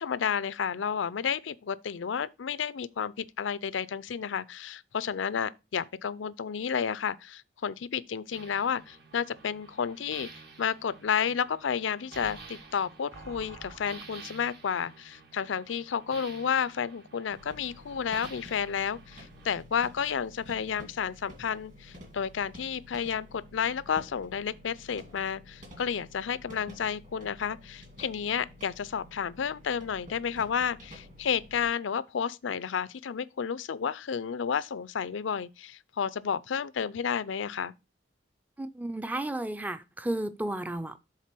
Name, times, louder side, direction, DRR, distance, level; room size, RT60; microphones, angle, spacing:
voice 1, 0.0-10.3 10.6-37.7, left 7 dB, 85° left, 0.5 m, -31 dB
sound 1, 8.3-19.6, right 4 dB, 60° right, 1.3 m, -50 dB
sound 2, 17.3-31.7, left 1 dB, 40° right, 2.2 m, -51 dB
voice 2, 38.6-41.0, right 1 dB, 10° right, 0.4 m, -33 dB
7.4 x 3.7 x 6.0 m
head